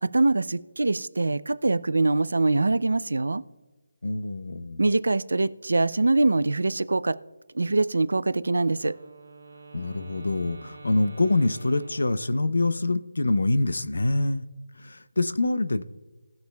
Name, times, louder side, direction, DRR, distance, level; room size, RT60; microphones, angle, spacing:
voice 1, 0.0-3.4 4.8-7.2 7.5-8.9, right 2 dB, 85° right, 16 dB, 0.5 m, -23 dB
voice 2, 4.0-4.8 9.7-14.5 14.8-15.8, left 2 dB, 80° left, 14 dB, 0.7 m, -25 dB
Wind instrument woodwind instrument, 8.7-12.8, right 3 dB, 55° right, 1.9 m, -47 dB
19.0 x 6.7 x 2.3 m, 1.2 s
figure-of-eight pair, 180°, 0 cm